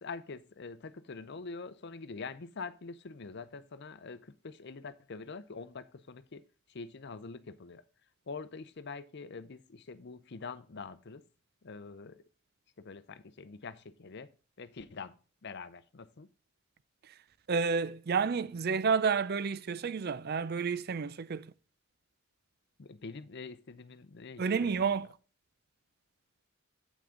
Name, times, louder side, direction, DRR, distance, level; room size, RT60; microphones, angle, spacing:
voice 1, 0.0-6.4 6.7-7.8 8.3-11.2 11.6-12.2 12.8-14.3 14.6-15.1 15.4-16.3 22.8-25.0, left 4 dB, 50° left, 0.6 m, -45 dB
voice 2, 17.5-21.5 24.4-25.1, right 5 dB, 45° right, 0.4 m, -30 dB
8.2 x 6.0 x 3.7 m
head